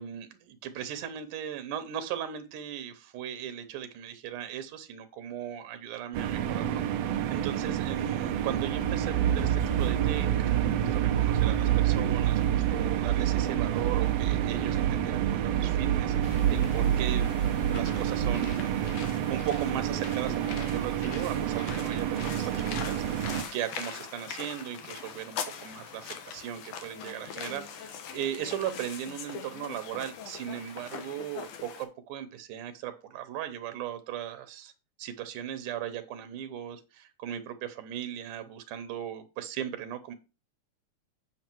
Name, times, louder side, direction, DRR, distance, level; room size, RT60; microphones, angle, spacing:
voice 1, 0.0-16.2 16.5-17.3 17.7-34.7 35.0-40.1, right 10 dB, 90° right, 10 dB, 2.5 m, -38 dB
sound 1, 6.1-23.4, right 10 dB, 70° right, 1.6 m, -30 dB
sound 2, 8.6-19.1, right 10 dB, 40° right, 3.1 m, -28 dB
sound 3, 16.2-31.8, left 7 dB, 80° left, 2.5 m, -42 dB
8.5 x 6.1 x 4.5 m, 0.31 s
omnidirectional pair, 3.5 m